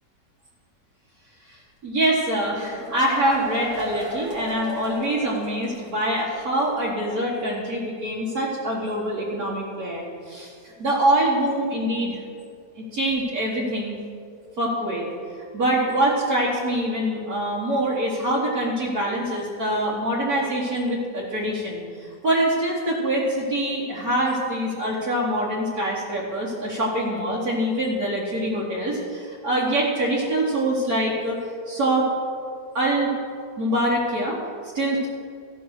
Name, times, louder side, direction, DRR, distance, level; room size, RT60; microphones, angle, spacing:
voice 1, 1.5-12.2 12.8-14.0 14.6-15.1 15.5-31.4 31.7-32.1 32.7-33.1 33.6-34.4 34.7-35.1, right 1 dB, 75° right, -6 dB, 1.9 m, -24 dB
sound 1, 2.4-6.1 6.4-6.5 6.8-6.9, right 1 dB, 90° right, 2.1 m, -35 dB
14.5 x 5.5 x 6.4 m, 2.2 s
omnidirectional pair, 1.6 m